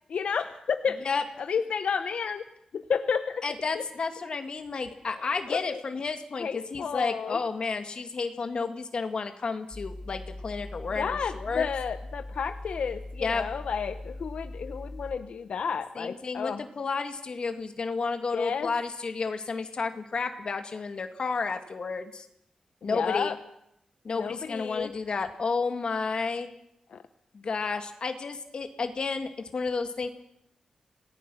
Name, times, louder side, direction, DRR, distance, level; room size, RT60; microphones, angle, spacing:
voice 1, 0.1-1.1 1.4-2.4 2.7-3.4 3.7-3.8 5.5-5.8 6.4-7.4 11.0-16.6 18.3-18.7 22.8-23.4 24.1-24.9 26.9-27.0, left 6 dB, 75° left, 9 dB, 0.9 m, -31 dB
voice 2, 3.4-11.7 13.2-13.4 16.0-22.3 22.8-23.3 24.0-26.5 27.3-30.1, left 4 dB, 50° left, 6 dB, 2.1 m, -31 dB
sound 1, 9.7-15.2, left 2 dB, 5° left, 1.1 m, -40 dB
27.5 x 18.5 x 6.3 m, 0.79 s
wide cardioid pair, 155°, 2 cm